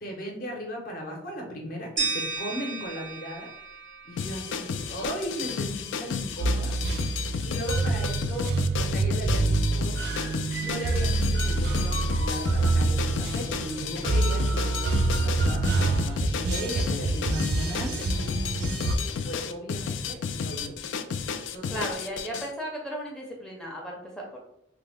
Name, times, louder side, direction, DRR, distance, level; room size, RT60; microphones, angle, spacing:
voice 1, 0.0-3.5 4.1-6.8 7.4-10.0 10.5-18.1 18.6-20.8 21.5-21.9, equal, 45° left, 0 dB, 0.7 m, -37 dB
sound 1, 2.0-4.9, right 4 dB, 85° right, 1.1 m, -34 dB
sound 2, 4.2-22.5, left 6 dB, 70° left, 0.3 m, -32 dB
sound 3, 6.4-19.0, right 2 dB, 55° right, 0.4 m, -26 dB
voice 2, 21.7-24.4, equal, 5° left, -2 dB, 0.5 m, -35 dB
3.3 x 2.0 x 3.4 m, 0.75 s
head